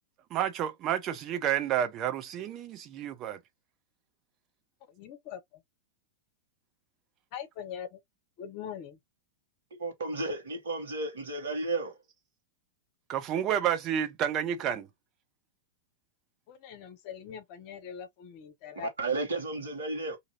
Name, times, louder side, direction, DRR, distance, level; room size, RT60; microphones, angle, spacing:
voice 1, 0.3-3.4 13.1-14.9, right 10 dB, 35° right, 0.6 m, -30 dB
voice 2, 4.9-5.4 7.3-8.0 8.4-9.0 16.5-18.9, left 8 dB, 45° left, 0.7 m, -42 dB
voice 3, 9.7-12.0 18.7-20.2, right 3 dB, 65° right, 1.2 m, -33 dB
2.7 x 2.5 x 2.8 m
figure-of-eight pair, 95°, 0 cm